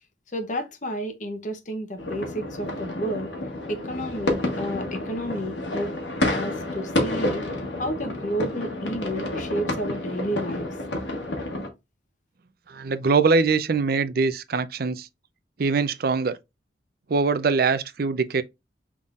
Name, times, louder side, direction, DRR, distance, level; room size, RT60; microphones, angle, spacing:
voice 1, 0.3-3.3 3.7-6.0 6.3-7.4 7.8-10.7, equal, 45° left, 0.8 m, -31 dB
sound 1, 2.0-11.7, left 1 dB, 85° left, 1.3 m, -29 dB
voice 2, 12.7-15.1 15.6-16.4 17.1-18.4, right 4 dB, 55° right, 0.5 m, -23 dB
5.7 x 3.6 x 2.4 m
head